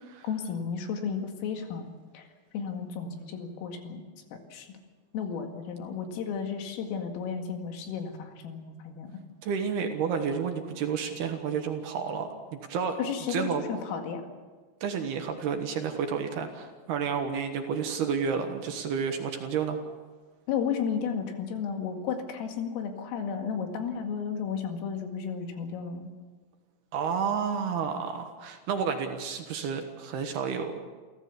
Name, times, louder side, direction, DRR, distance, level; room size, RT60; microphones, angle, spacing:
voice 1, 0.2-1.9 2.1-2.3 2.5-4.0 4.3-4.8 5.1-9.1 13.0-14.3 20.5-26.1, left 6 dB, 90° left, 4 dB, 4.7 m, -33 dB
voice 2, 9.4-13.0 13.3-13.6 14.8-19.8 26.9-30.7, right 6 dB, 65° right, 5 dB, 3.0 m, -30 dB
28.5 x 15.0 x 7.0 m, 1.4 s
omnidirectional pair, 5.8 m